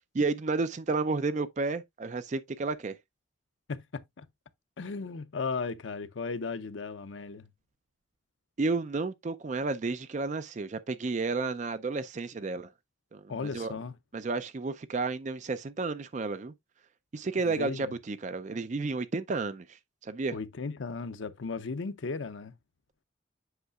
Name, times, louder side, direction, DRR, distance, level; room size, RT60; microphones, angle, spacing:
voice 1, 0.0-3.0 8.6-12.7 13.1-13.7 14.1-16.5 17.1-20.4, right 3 dB, 40° right, 0.4 m, -32 dB
voice 2, 3.7-4.2 4.8-7.5 13.3-13.9 17.4-17.9 20.3-22.5, left 4 dB, 75° left, 0.6 m, -36 dB
8.0 x 5.7 x 2.3 m
head